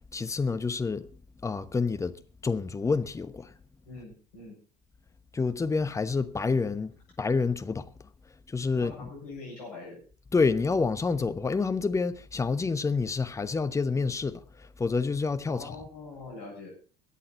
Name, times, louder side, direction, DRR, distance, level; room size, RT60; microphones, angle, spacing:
voice 1, 0.1-1.1 1.4-2.1 2.4-3.5 5.3-7.9 8.5-9.1 10.3-15.8, left 4 dB, 15° left, 1.0 m, -28 dB
voice 2, 3.8-4.6 8.7-10.0 15.5-16.7, left 3 dB, 65° left, 7.5 m, -43 dB
22.5 x 8.5 x 4.3 m
figure-of-eight pair, 70°, 20 cm